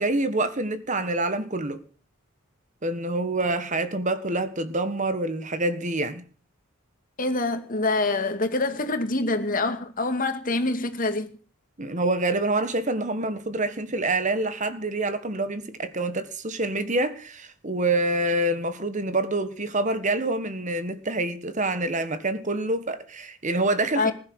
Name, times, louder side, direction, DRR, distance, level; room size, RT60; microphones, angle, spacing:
voice 1, 0.0-1.8 2.8-6.2 11.8-24.1, right 2 dB, 35° right, 1.5 m, -26 dB
voice 2, 7.2-11.3 24.0-24.1, left 2 dB, 40° left, 2.3 m, -25 dB
20.5 x 11.0 x 6.5 m
head